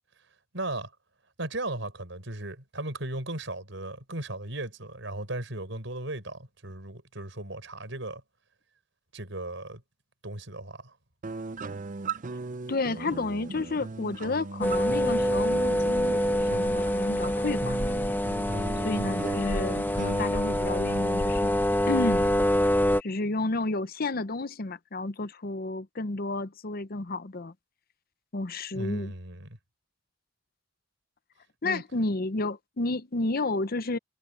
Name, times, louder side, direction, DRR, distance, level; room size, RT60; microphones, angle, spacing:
voice 1, 0.5-0.9 1.4-8.2 9.1-9.8 10.2-10.9 18.5-18.9 28.7-29.6 31.6-31.8, right 2 dB, 70° right, 6.1 m, -36 dB
sound 1, 11.2-20.2, right 4 dB, 40° right, 0.6 m, -38 dB
voice 2, 12.7-17.9 18.8-21.6 21.9-22.3 23.0-27.5 28.3-29.1 31.6-34.0, left 2 dB, 50° left, 0.8 m, -31 dB
sound 2, 14.6-23.0, equal, 10° left, 1.0 m, -26 dB
head